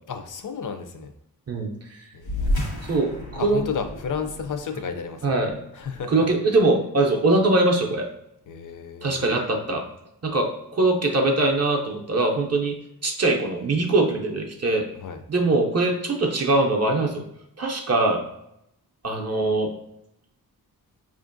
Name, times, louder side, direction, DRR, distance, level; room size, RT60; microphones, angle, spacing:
voice 1, 0.1-1.1 2.1-2.9 3.4-5.2 5.7-6.3 8.5-9.3 14.9-15.2, left 6 dB, 55° left, 6 dB, 0.5 m, -32 dB
voice 2, 1.5-2.1 2.9-3.6 5.2-5.6 6.1-8.1 9.0-9.9 10.2-12.8 13.0-14.9 15.3-17.2 17.6-18.2 19.0-19.7, right 2 dB, 45° right, 1 dB, 0.5 m, -22 dB
sound 1, 2.2-7.1, left 1 dB, 75° left, 0.9 m, -32 dB
5.1 x 2.5 x 2.5 m, 0.81 s
wide cardioid pair, 120°, 37 cm